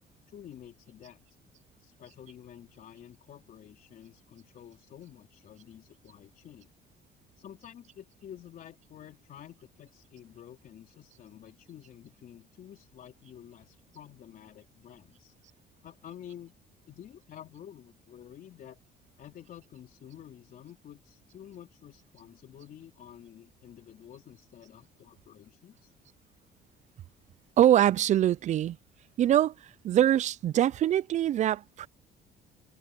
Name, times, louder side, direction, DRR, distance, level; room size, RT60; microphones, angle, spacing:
voice 1, 0.3-1.2 1.8-6.7 7.4-15.3 15.8-16.5 16.9-18.8 19.2-25.9, left 10 dB, 55° left, 3.7 m, -50 dB
voice 2, 27.6-28.8 29.2-29.5 29.8-31.9, right 11 dB, 45° right, 0.4 m, -23 dB
cardioid pair, 110°, 17 cm